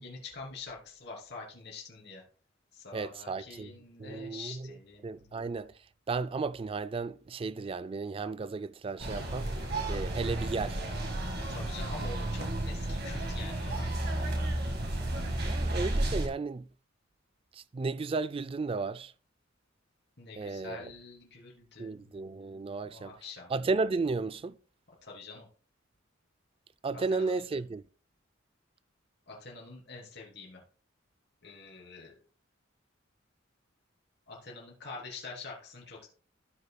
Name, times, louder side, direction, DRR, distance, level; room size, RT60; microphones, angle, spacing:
voice 1, 0.0-2.2 2.7-5.5 11.4-14.1 20.2-22.3 22.8-23.5 25.0-25.5 27.1-27.3 29.3-30.6 31.4-32.2 34.3-36.1, left 4 dB, 55° left, 3.0 m, -46 dB
voice 2, 2.9-3.7 4.0-4.8 5.0-5.7 6.1-9.5 9.9-10.8 15.4-16.7 17.5-19.1 20.4-20.9 21.8-23.1 23.5-24.6 26.8-27.8, right 4 dB, 30° right, 0.3 m, -34 dB
sound 1, 9.0-16.3, right 1 dB, 50° right, 1.6 m, -32 dB
16.0 x 5.5 x 2.2 m
head